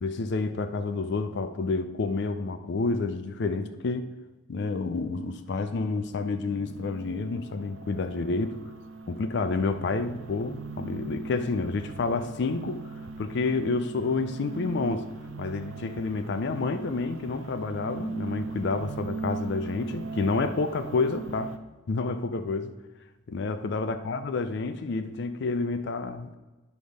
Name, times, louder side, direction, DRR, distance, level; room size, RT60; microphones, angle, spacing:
voice 1, 0.0-4.1 4.5-8.6 9.1-12.9 13.2-15.0 15.4-21.5 21.9-22.7 23.3-26.3, left 3 dB, 60° left, 9 dB, 0.5 m, -29 dB
sound 1, 5.1-21.6, right 4 dB, 85° right, 0.6 m, -40 dB
9.8 x 3.5 x 6.3 m, 1.2 s
head